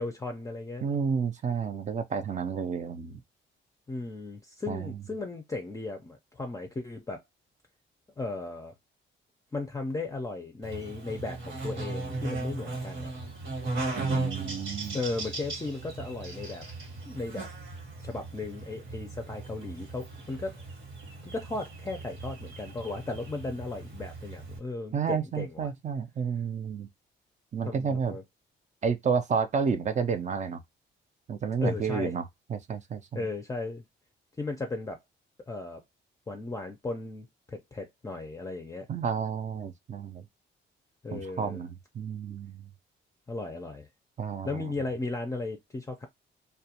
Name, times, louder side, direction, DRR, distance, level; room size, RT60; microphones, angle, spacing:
voice 1, 0.0-0.8 3.9-7.2 8.2-8.7 9.5-13.1 14.9-16.7 17.1-17.5 18.0-20.6 21.2-25.7 27.6-28.2 31.6-32.1 33.1-33.8 34.4-35.0 35.5-35.8 36.3-38.9 41.0-41.6 43.3-43.9 44.4-46.1, left 3 dB, 15° left, 0.5 m, -36 dB
voice 2, 0.8-3.2 4.7-5.0 14.0-15.0 24.9-26.9 27.5-28.2 28.8-30.6 31.3-33.3 38.9-40.2 41.1-42.7 44.2-44.6, right 6 dB, 35° right, 0.5 m, -31 dB
Buzz, 10.6-24.6, right 2 dB, 75° right, 1.2 m, -37 dB
2.3 x 2.2 x 2.8 m
cardioid pair, 90°, 20 cm